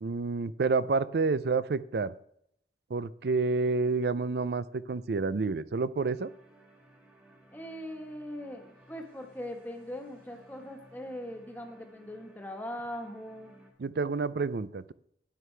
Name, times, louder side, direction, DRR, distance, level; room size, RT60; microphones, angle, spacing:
voice 1, 0.0-2.1 2.9-6.3 13.8-14.9, right 4 dB, 60° right, 17 dB, 0.4 m, -29 dB
sound 1, 6.1-13.7, right 1 dB, 10° right, 2.0 m, -59 dB
voice 2, 7.5-13.5, left 1 dB, 10° left, 3 dB, 1.4 m, -40 dB
12.0 x 9.9 x 3.3 m, 0.71 s
head